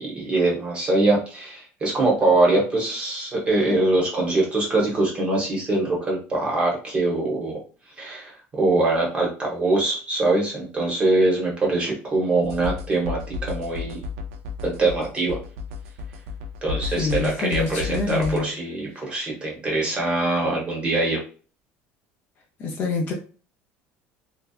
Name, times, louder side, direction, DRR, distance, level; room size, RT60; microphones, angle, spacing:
voice 1, 0.0-7.6 8.0-14.0 14.6-15.4 16.6-21.2, right 2 dB, 20° right, 0.9 m, -23 dB
sound 1, 12.4-18.4, left 4 dB, 75° right, 0.4 m, -32 dB
voice 2, 17.0-18.5 22.6-23.1, left 4 dB, 40° left, 0.5 m, -26 dB
2.6 x 2.2 x 2.3 m
cardioid pair, 155°, 5 cm